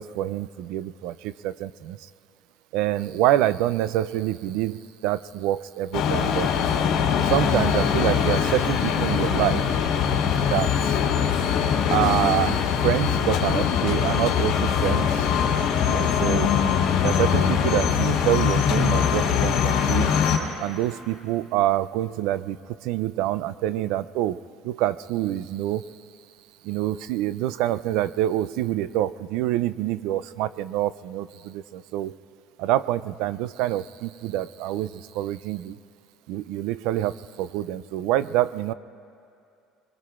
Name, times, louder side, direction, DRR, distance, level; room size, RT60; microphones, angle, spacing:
voice 1, 0.0-2.0 2.7-6.5 7.3-9.6 10.5-10.7 11.9-15.1 15.8-16.5 17.0-20.1 20.6-22.6 22.8-24.4 24.6-25.8 26.6-32.1 32.6-35.8 36.3-38.7, right 13 dB, 75° right, 16 dB, 0.4 m, -26 dB
sound 1, 5.9-20.4, left 7 dB, 65° left, 2.1 m, -22 dB
24.5 x 22.5 x 2.5 m, 2.6 s
cardioid pair, 145°, 0 cm